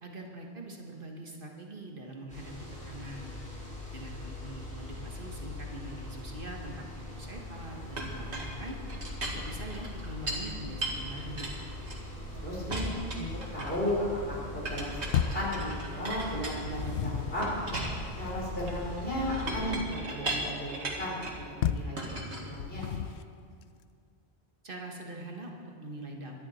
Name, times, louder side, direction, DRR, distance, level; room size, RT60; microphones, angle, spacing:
voice 1, 0.0-2.5 2.9-3.4 3.9-8.8 9.2-11.5 24.6-26.4, right 2 dB, 55° right, 1 dB, 1.8 m, -43 dB
sound 1, 2.3-19.7, left 2 dB, 5° left, 4.9 m, -41 dB
Chink clink, 8.0-10.5 10.8-12.3 12.7-13.9 14.6-16.9 17.4-21.4 22.0-23.1, right 1 dB, 85° right, 2.2 m, -38 dB
voice 2, 12.4-12.9 13.1-13.3 13.5-14.0 14.3-17.5 18.2-22.9, equal, 60° left, -5 dB, 4.7 m, -35 dB
sound 2, 15.1-15.5 16.4-17.5 21.6-22.0 22.6-23.3, left 9 dB, 80° left, 0.9 m, -31 dB
22.5 x 11.0 x 4.4 m, 2.2 s
omnidirectional pair, 1.1 m